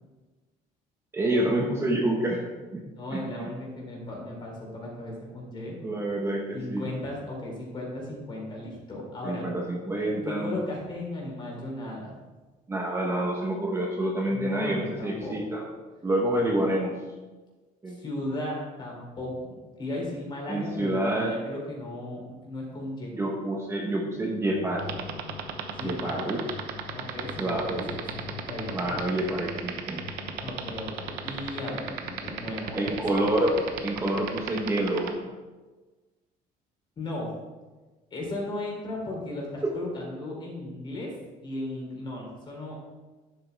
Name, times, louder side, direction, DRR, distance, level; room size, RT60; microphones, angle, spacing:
voice 1, 1.1-2.5 2.7-2.8 3.1-3.5 5.8-6.9 9.2-10.6 12.7-15.7 16.0-16.9 17.8-18.0 20.5-21.3 23.1-24.9 25.8-26.4 27.4-27.9 28.7-30.1 32.7-35.2 39.6-39.7, right 1 dB, 15° right, -1 dB, 1.0 m, -28 dB
voice 2, 3.0-5.8 6.5-9.4 10.3-12.1 14.3-15.4 16.3-16.5 17.9-23.1 25.7-26.3 26.9-29.0 30.4-33.0 37.0-37.3 38.1-41.1 41.4-42.7, left 1 dB, 30° left, -2 dB, 3.4 m, -36 dB
sound 1, 24.6-34.7, left 7 dB, 70° left, 1.0 m, -45 dB
sound 2, 24.8-35.1, right 12 dB, 90° right, 1.0 m, -33 dB
10.5 x 7.8 x 3.5 m, 1.2 s
cardioid pair, 145°, 16 cm